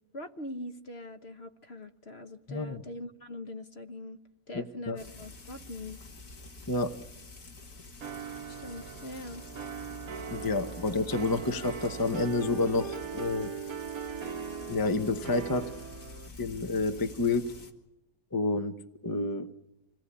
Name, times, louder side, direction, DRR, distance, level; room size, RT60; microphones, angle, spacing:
voice 1, 0.1-4.2 4.5-6.0 8.5-9.4, left 1 dB, 45° left, 7 dB, 1.3 m, -42 dB
voice 2, 4.5-5.0 6.7-6.9 10.3-13.5 14.7-15.7 16.4-17.5 18.3-18.7 19.0-19.5, left 3 dB, 15° left, 8 dB, 0.9 m, -29 dB
Frying (food), 5.0-17.7, left 3 dB, 85° left, 2.7 m, -48 dB
sound 1, 8.0-16.3, right 7 dB, 70° right, 1.8 m, -40 dB
27.0 x 18.0 x 9.9 m, 0.90 s
omnidirectional pair, 1.6 m